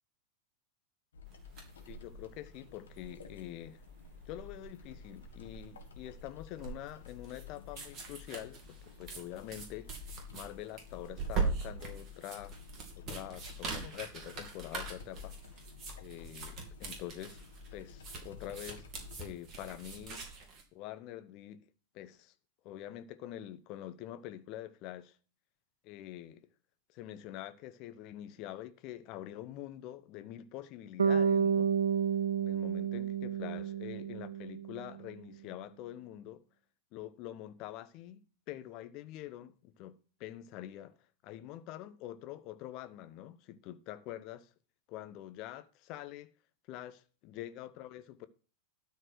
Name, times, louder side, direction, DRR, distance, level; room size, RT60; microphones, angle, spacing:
sound 1, 1.1-19.2, left 9 dB, 65° left, 1.7 m, -52 dB
sound 2, 1.3-20.6, right 4 dB, 30° right, 2.9 m, -42 dB
voice 1, 1.8-3.8 4.3-10.0 10.3-12.6 13.0-15.4 16.0-17.4 17.7-20.3 20.7-21.6 21.9-22.3 22.6-25.2 25.8-26.5 26.9-31.7 32.4-36.4 36.9-40.9 41.2-44.5 44.9-46.3 46.7-47.0 47.2-48.3, left 13 dB, 40° left, 0.9 m, -45 dB
Bass guitar, 31.0-35.1, right 7 dB, 70° right, 0.5 m, -31 dB
12.5 x 4.5 x 6.3 m
figure-of-eight pair, 90°, 0 cm